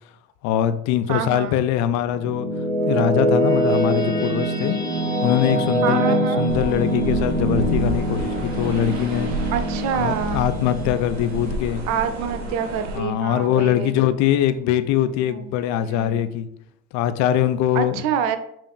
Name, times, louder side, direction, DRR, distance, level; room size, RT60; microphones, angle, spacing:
voice 1, 0.4-2.5 2.9-4.8 5.2-9.3 9.9-11.8 12.9-16.5 16.9-18.0, left 11 dB, 50° left, 0.4 m, -22 dB
voice 2, 1.1-1.6 5.8-6.4 9.5-10.5 11.9-14.0 15.2-15.5 15.8-16.2 17.7-18.4, right 8 dB, 55° right, 0.5 m, -26 dB
sound 1, 1.8-13.1, right 1 dB, 10° left, 0.7 m, -24 dB
Telephone, 3.4-8.4, right 4 dB, 20° right, 1.4 m, -37 dB
sound 2, 6.5-13.0, right 2 dB, 90° right, 0.8 m, -30 dB
5.7 x 2.5 x 2.2 m
hypercardioid pair, 80°, 35 cm